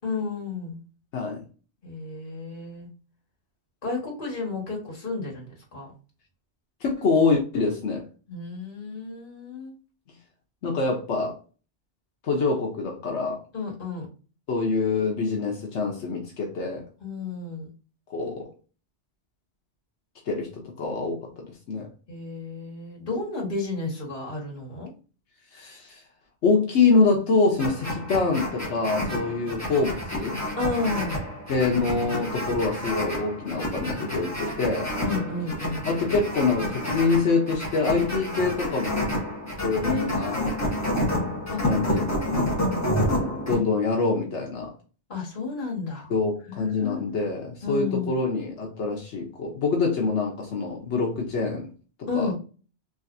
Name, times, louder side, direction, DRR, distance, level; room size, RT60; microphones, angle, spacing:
voice 1, 0.0-0.8 1.8-2.9 3.8-5.9 8.3-9.8 13.5-14.1 17.0-17.7 22.1-24.9 30.5-31.2 35.0-35.8 39.8-40.3 41.5-41.6 42.6-42.9 45.1-46.1 46.5-47.0 47.6-48.1 52.1-52.3, left 4 dB, 50° left, 1.8 m, -32 dB
voice 2, 1.1-1.4 6.8-8.0 10.6-11.4 12.2-13.4 14.5-16.9 18.1-18.5 20.3-21.9 25.5-26.0 26.4-30.4 31.5-35.0 35.8-39.1 39.6-40.4 41.6-42.5 43.5-44.7 46.1-51.7 52.0-52.3, left 4 dB, 85° left, 1.2 m, -25 dB
sound 1, 27.6-43.6, left 1 dB, 15° left, 1.5 m, -29 dB
3.9 x 3.2 x 2.6 m
omnidirectional pair, 1.1 m